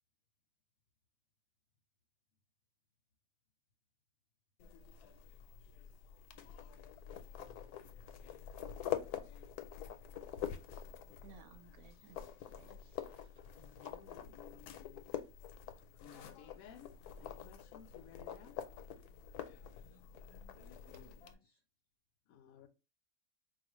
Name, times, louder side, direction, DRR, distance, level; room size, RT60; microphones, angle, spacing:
sound 1, 4.6-21.3, left 9 dB, 90° left, 1.1 m, -46 dB
voice 1, 11.2-14.0 16.1-16.2, right 7 dB, 75° right, 1.0 m, -62 dB
voice 2, 13.6-15.1 16.0-16.9 17.2-18.6 22.3-22.7, left 7 dB, 70° left, 0.9 m, -58 dB
voice 3, 19.4-21.6, left 3 dB, 20° left, 0.8 m, -64 dB
4.3 x 2.4 x 3.0 m
omnidirectional pair, 1.6 m